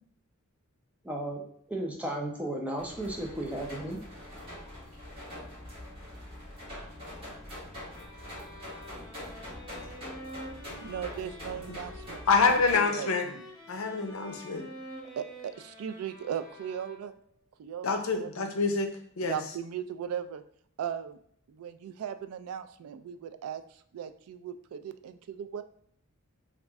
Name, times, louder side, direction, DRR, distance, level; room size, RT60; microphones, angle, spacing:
voice 1, 1.0-1.4 1.7-4.0, right 1 dB, 5° right, -1 dB, 0.5 m, -34 dB
sound 1, 2.8-12.8, left 1 dB, 25° right, 1.4 m, -44 dB
sound 2, 7.9-17.3, equal, 20° left, 0.8 m, -48 dB
voice 2, 10.8-13.1 15.2-17.1 17.6-17.9 18.2-18.5 19.2-20.4 20.8-21.2 21.5-25.6, right 8 dB, 85° right, 11 dB, 0.3 m, -38 dB
voice 3, 12.3-13.3 13.7-14.7 17.8-18.9 19.2-19.4, left 4 dB, 70° left, 5 dB, 0.5 m, -26 dB
3.1 x 2.4 x 3.4 m, 0.66 s
head